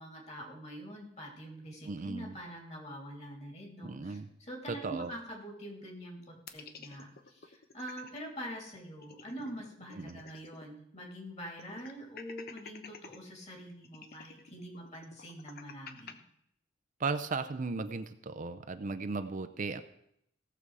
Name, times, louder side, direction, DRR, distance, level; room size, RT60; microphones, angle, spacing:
voice 1, 0.0-16.2, equal, 35° left, 1 dB, 3.0 m, -45 dB
voice 2, 1.8-2.4 3.8-4.3 4.7-5.1 9.9-10.2 17.0-19.8, right 4 dB, 45° right, 10 dB, 0.6 m, -36 dB
sound 1, 6.5-8.2 8.6-8.7 8.9-10.7 11.0-11.1 11.6-13.2 13.8-16.1, left 5 dB, 55° left, 0.9 m, -50 dB
17.0 x 6.9 x 4.8 m, 0.73 s
head